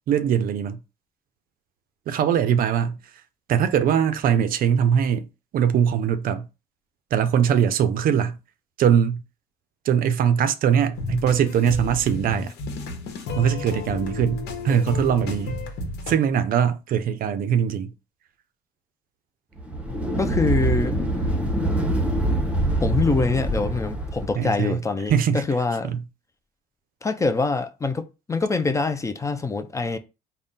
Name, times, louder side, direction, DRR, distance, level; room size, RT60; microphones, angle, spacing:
voice 1, 0.1-0.8 2.1-3.0 3.5-5.3 5.5-6.5 7.1-8.4 8.8-9.2 9.8-12.5 13.4-15.6 16.1-17.9 24.4-24.8 25.1-25.4 25.8-26.0, right 8 dB, 60° right, 0.5 m, -21 dB
sound 1, 10.9-16.1, left 3 dB, 80° left, 1.0 m, -32 dB
sound 2, 19.6-24.4, right 1 dB, 10° right, 0.8 m, -24 dB
voice 2, 20.2-21.0 22.8-25.9 27.0-30.0, left 3 dB, 20° left, 0.4 m, -24 dB
3.6 x 2.1 x 4.0 m
cardioid pair, 110°, 17 cm